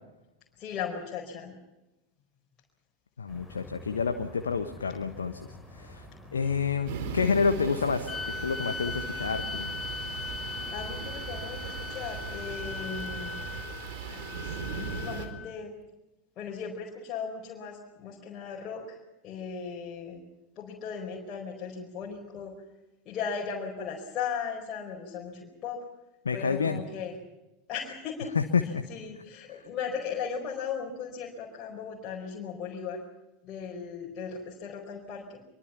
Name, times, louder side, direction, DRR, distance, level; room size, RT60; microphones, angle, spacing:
voice 1, 0.6-1.5 6.4-6.5 10.7-13.3 14.1-14.5 14.7-15.7 16.4-19.0 19.2-20.2 20.6-22.5 23.0-25.8 26.3-27.1 27.7-28.3 28.6-33.0 33.4-35.4, left 6 dB, 35° left, -3 dB, 4.9 m, -37 dB
voice 2, 3.2-5.4 5.8-6.0 6.3-8.1 8.4-9.7 26.2-26.8 28.3-28.8, left 5 dB, 75° left, 7 dB, 1.3 m, -28 dB
sound 1, 3.3-13.7, left 1 dB, 5° right, 6.6 m, -48 dB
sound 2, 6.8-15.3, right 6 dB, 55° right, 4.1 m, -38 dB
sound 3, 8.1-15.6, left 4 dB, 20° left, 0.9 m, -39 dB
25.0 x 23.5 x 5.9 m, 0.99 s
figure-of-eight pair, 80°, 0 cm